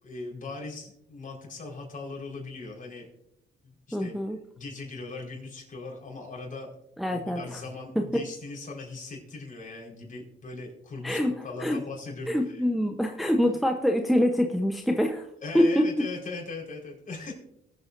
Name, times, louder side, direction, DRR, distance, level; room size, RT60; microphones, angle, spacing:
voice 1, 0.0-3.1 3.6-4.1 4.6-6.7 7.1-12.6 15.4-17.3, left 3 dB, 40° left, -2 dB, 4.5 m, -39 dB
voice 2, 3.9-4.4 7.0-7.6 8.0-8.2 11.0-11.3 11.6-11.8 12.3-15.3 15.5-15.9, equal, ahead, 3 dB, 0.8 m, -25 dB
22.0 x 8.3 x 2.6 m, 0.81 s
cardioid pair, 90°, 20 cm